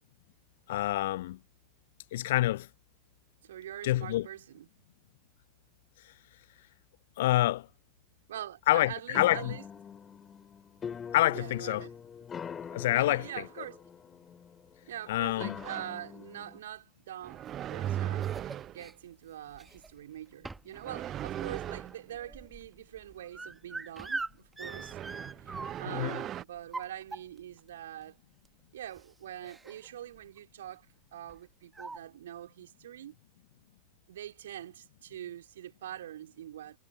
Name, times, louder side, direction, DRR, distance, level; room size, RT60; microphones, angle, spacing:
voice 1, 0.7-1.4 2.1-2.7 3.8-4.3 7.2-7.7 8.7-9.6 11.1-11.8 12.7-13.5 15.1-15.6 25.9-26.2, left 15 dB, 55° left, 0.4 m, -27 dB
voice 2, 3.4-4.7 8.3-9.6 11.3-11.9 12.9-13.8 14.9-18.3 18.7-28.2 28.7-33.1 34.1-36.8, right 11 dB, 60° right, 4.5 m, -44 dB
sound 1, 9.1-16.6, left 7 dB, 20° left, 3.2 m, -44 dB
sound 2, 15.6-15.9 17.2-18.9 20.7-22.0 24.6-26.4, right 11 dB, 30° right, 0.9 m, -37 dB
sound 3, 17.5-18.9 19.5-20.0 20.4-20.8 21.1-26.0 26.6-27.6 28.5-28.6 28.9-29.1 29.4-29.9 30.1-30.4 31.3-31.4 31.7-32.0, right 3 dB, 10° right, 1.8 m, -42 dB
figure-of-eight pair, 90°, 0 cm